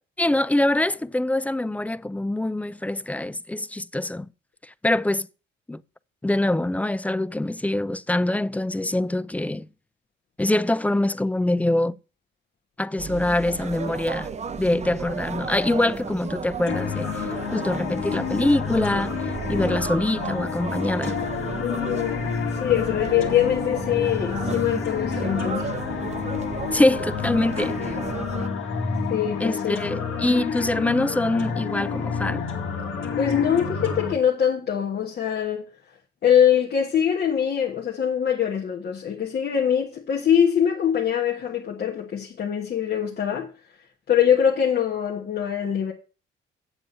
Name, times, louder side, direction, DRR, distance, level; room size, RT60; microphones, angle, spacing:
voice 1, 0.2-4.3 4.8-5.3 5.7-5.8 6.2-9.7 10.4-12.0 12.8-14.3 14.6-17.1 17.5-19.1 19.5-21.2 26.7-27.8 29.4-32.4, left 1 dB, 5° left, 0.4 m, -24 dB
sound 1, 13.0-28.5, right 6 dB, 35° right, 0.7 m, -34 dB
sound 2, 16.7-34.1, left 6 dB, 85° left, 2.3 m, -29 dB
voice 2, 21.6-22.3 22.6-25.7 29.1-29.8 33.2-35.6 36.2-43.5 44.1-45.9, left 9 dB, 55° left, 1.5 m, -23 dB
8.0 x 7.6 x 5.5 m
cardioid pair, 90°, 20 cm